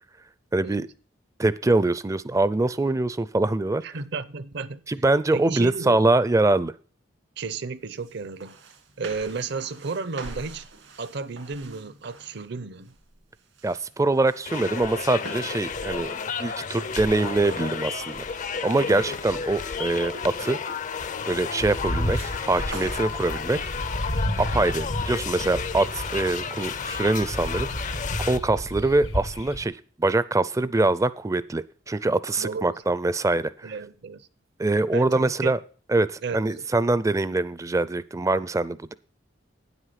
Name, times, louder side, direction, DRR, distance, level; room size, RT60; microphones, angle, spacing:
voice 1, 0.5-0.9 1.4-3.8 4.9-6.7 13.6-16.1 16.4-18.2 18.6-20.6 21.3-23.6 24.4-27.9 28.2-33.7 34.6-35.6 35.9-38.9, right 2 dB, 15° right, 0.4 m, -24 dB
voice 2, 3.8-4.8 5.3-6.1 7.4-8.6 9.0-10.7 11.0-12.9 18.8-19.1 32.4-32.8 33.6-34.3 34.9-35.5 36.2-36.7, right 4 dB, 65° right, 0.7 m, -33 dB
sound 1, 8.1-8.2 8.4-12.4 12.9-13.2 13.6-21.0 22.2-23.1, right 2 dB, 80° right, 2.2 m, -43 dB
sound 2, 14.5-28.4, left 6 dB, 40° left, 0.5 m, -32 dB
sound 3, 21.6-29.7, equal, 80° left, 1.9 m, -32 dB
9.7 x 8.1 x 5.7 m
head